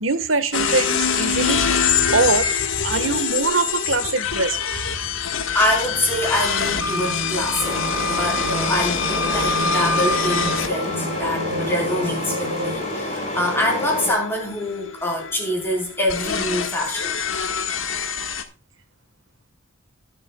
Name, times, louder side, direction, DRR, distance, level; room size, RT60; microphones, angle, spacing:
voice 1, 0.0-1.6 2.1-2.5 2.8-4.7 11.2-11.3, right 3 dB, 80° right, 1.5 m, -22 dB
sound 1, 0.5-18.4, left 6 dB, 85° left, 1.6 m, -25 dB
voice 2, 5.5-7.8 8.0-17.2, left 1 dB, 10° left, 4.3 m, -25 dB
sound 2, 6.6-12.8, equal, 50° right, 4.8 m, -32 dB
sound 3, 7.6-14.1, left 1 dB, 30° left, 5.5 m, -28 dB
20.0 x 8.0 x 2.3 m
head